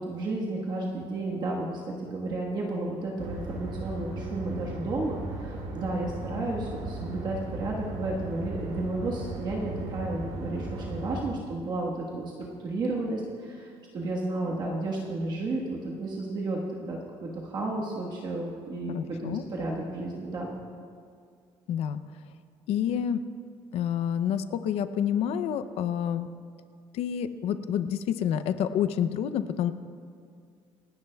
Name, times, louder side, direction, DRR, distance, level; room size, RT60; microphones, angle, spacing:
voice 1, 0.0-20.6, right 2 dB, 40° right, -3 dB, 1.4 m, -32 dB
sound 1, 3.2-11.3, right 2 dB, 80° right, 1.4 m, -37 dB
voice 2, 18.9-19.4 21.7-22.0 22.7-23.2 23.7-26.3 26.9-29.7, left 9 dB, 65° left, 11 dB, 0.5 m, -28 dB
28.0 x 10.0 x 2.3 m, 2.3 s
cardioid pair, 160°, 11 cm